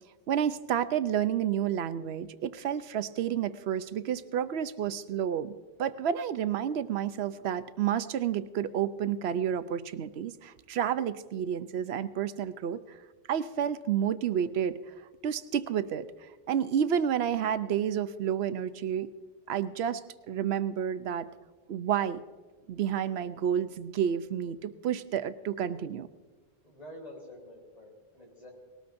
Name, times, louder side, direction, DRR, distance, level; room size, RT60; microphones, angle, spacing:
voice 1, 0.3-5.5 5.8-13.0 13.3-14.9 15.2-16.0 16.5-19.1 19.5-20.0 20.3-21.3 21.7-22.2 22.7-26.1, right 9 dB, 90° right, 12 dB, 0.9 m, -30 dB
voice 2, 26.6-28.5, left 1 dB, 40° left, -1 dB, 3.8 m, -48 dB
19.5 x 18.5 x 2.6 m, 1.3 s
omnidirectional pair, 1.0 m